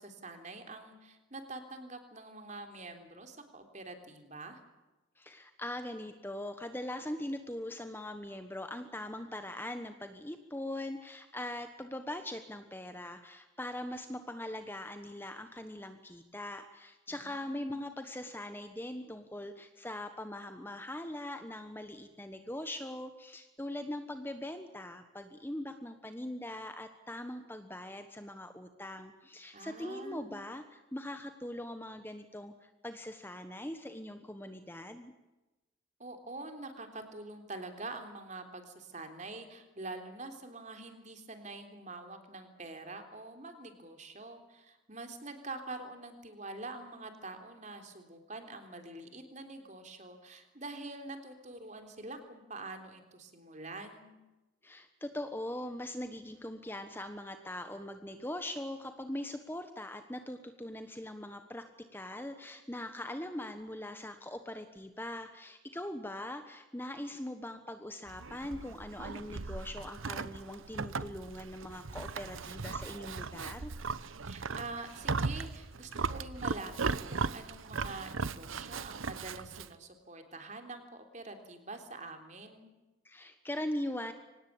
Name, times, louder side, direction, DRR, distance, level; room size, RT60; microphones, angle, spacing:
voice 1, 0.0-4.6 17.1-17.8 29.5-30.4 36.0-54.1 74.3-82.7, right 2 dB, 35° right, 6 dB, 3.5 m, -45 dB
voice 2, 5.2-35.1 54.6-73.7 83.0-84.1, left 1 dB, 10° left, 8 dB, 1.2 m, -41 dB
Livestock farm animals working animals, 68.1-79.7, right 4 dB, 80° right, 0.9 m, -38 dB
25.0 x 19.0 x 8.7 m, 1.1 s
head